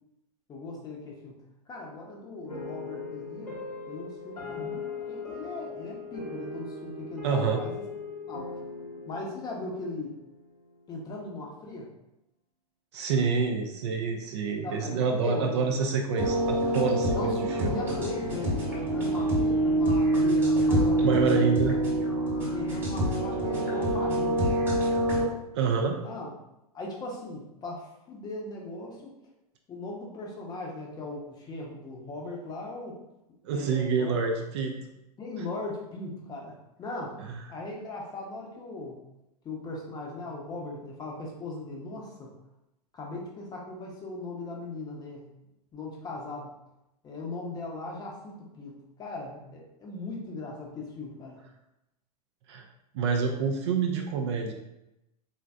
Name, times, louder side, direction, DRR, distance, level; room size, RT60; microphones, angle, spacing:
voice 1, 0.5-1.4 1.7-3.6 3.9-7.7 8.3-8.5 9.1-10.1 10.9-11.9 14.6-15.6 17.1-21.5 22.5-24.7 26.0-26.3 26.7-29.1 29.7-33.0 33.5-34.2 35.2-37.2 37.5-39.0 39.4-42.3 42.9-45.3 45.7-46.5 47.0-51.4, left 2 dB, 20° left, -1 dB, 0.7 m, -38 dB
sound 1, 2.5-11.0, left 4 dB, 80° left, 0.9 m, -39 dB
voice 2, 7.2-7.6 12.9-17.8 21.0-21.7 25.5-26.0 33.4-34.7 37.3-37.4 52.5-52.7 52.9-54.5, right 5 dB, 45° right, 3 dB, 0.4 m, -27 dB
sound 2, 16.2-25.2, right 1 dB, 10° right, 1.1 m, -26 dB
3.9 x 2.4 x 2.2 m, 0.88 s
figure-of-eight pair, 95°, 21 cm